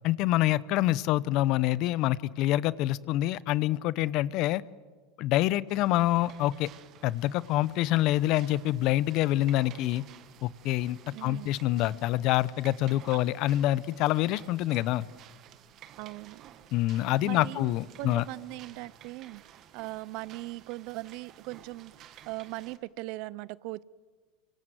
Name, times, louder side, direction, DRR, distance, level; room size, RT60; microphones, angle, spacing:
voice 1, 0.0-4.6 5.2-6.7 7.0-10.0 10.4-15.1 16.7-18.2, left 15 dB, 55° left, 20 dB, 0.8 m, -26 dB
sound 1, 5.7-22.8, right 10 dB, 45° right, 1.7 m, -53 dB
voice 2, 11.1-11.6 16.0-16.5 17.2-17.7 18.0-19.4 19.7-23.8, right 20 dB, 60° right, 21 dB, 0.7 m, -39 dB
25.0 x 25.0 x 7.9 m, 1.5 s
supercardioid pair, 115°, 0 cm